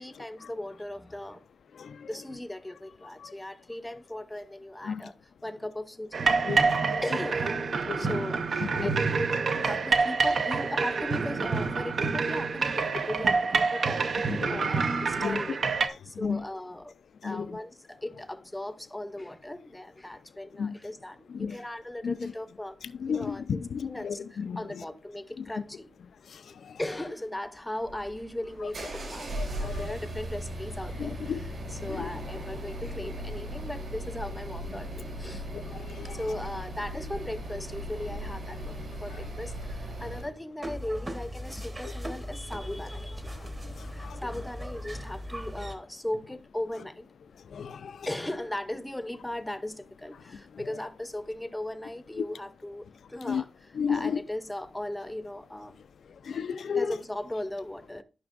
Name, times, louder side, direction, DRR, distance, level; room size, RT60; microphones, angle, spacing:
voice 1, 0.0-1.4 2.1-6.3 7.0-9.3 9.6-15.6 16.0-16.9 17.2-22.8 23.1-25.9 26.8-29.3 29.6-35.5 36.0-43.3 43.8-47.1 48.1-55.8 56.7-58.0, left 1 dB, 10° left, 0.6 m, -38 dB
sound 1, 6.1-15.9, right 4 dB, 60° right, 0.7 m, -27 dB
voice 2, 14.3-14.7 15.2-15.4 16.2-16.4 17.2-17.5 20.6-20.7 21.3-21.5 22.0-22.3 23.0-24.6 29.4-29.9 31.3-31.4 32.0-32.1 35.5-36.1 44.0-44.2 47.5-47.9 53.3-53.4 53.8-54.2 56.3-56.9, left 6 dB, 85° left, 0.4 m, -32 dB
sound 2, 27.8-40.3, right 1 dB, 85° right, 4.7 m, -38 dB
sound 3, 40.6-45.7, equal, 25° right, 1.0 m, -38 dB
13.0 x 6.0 x 2.5 m
wide cardioid pair, 150°, 0 cm